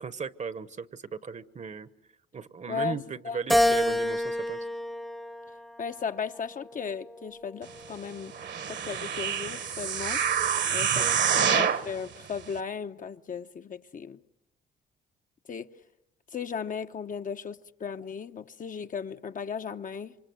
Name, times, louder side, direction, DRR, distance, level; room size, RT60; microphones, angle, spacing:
voice 1, 0.0-1.9 2.3-4.6 10.9-11.2, right 5 dB, 35° right, 1.0 m, -37 dB
Keyboard (musical), 3.5-6.0 6.6-7.8, left 1 dB, ahead, 0.9 m, -28 dB
voice 2, 5.8-8.3 8.7-10.2 10.7-11.1 11.4-14.2 15.5-15.7 16.3-20.2, left 6 dB, 40° left, 0.9 m, -36 dB
sound 1, 8.3-11.9 12.5-12.6, right 8 dB, 60° right, 1.5 m, -27 dB
28.0 x 25.0 x 7.9 m
cardioid pair, 90°, 20 cm